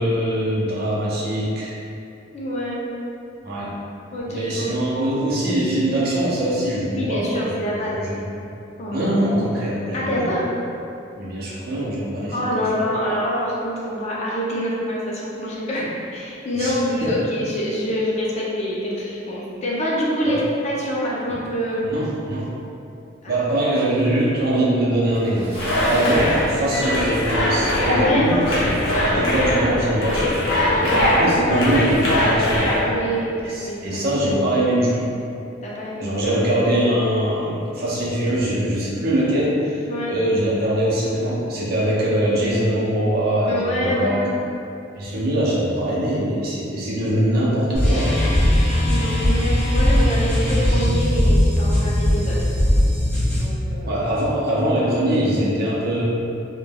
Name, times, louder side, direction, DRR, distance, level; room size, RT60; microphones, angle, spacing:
voice 1, 0.0-1.8 3.4-3.7 4.3-7.7 7.9-8.2 8.9-10.3 11.2-12.6 16.6-17.1 20.3-20.4 21.8-22.5 23.3-28.7 29.0-30.3 30.8-32.7 33.4-35.1 36.0-44.2 45.0-48.2 53.9-56.0, right 1 dB, 50° right, -7 dB, 0.6 m, -22 dB
voice 2, 2.3-2.8 4.1-4.8 6.9-8.0 8.8-9.1 9.9-10.5 12.3-20.4 20.6-21.9 23.2-23.5 27.9-28.3 30.8-31.1 32.8-33.4 33.6-34.0 35.6-36.2 39.9-40.1 43.5-44.4 48.2-52.5 53.3-54.0, equal, 35° left, -5 dB, 0.4 m, -26 dB
Splash splatter, 25.1-27.5 27.8-28.0 28.4-28.5 29.9-30.0 30.4-30.5 31.1-31.3, right 1 dB, 30° right, 0.9 m, -40 dB
sound 1, 25.5-32.8, left 1 dB, 85° left, 0.6 m, -21 dB
sound 2, 47.7-53.4, left 1 dB, 5° left, 1.1 m, -19 dB
3.1 x 2.1 x 2.2 m, 2.6 s
head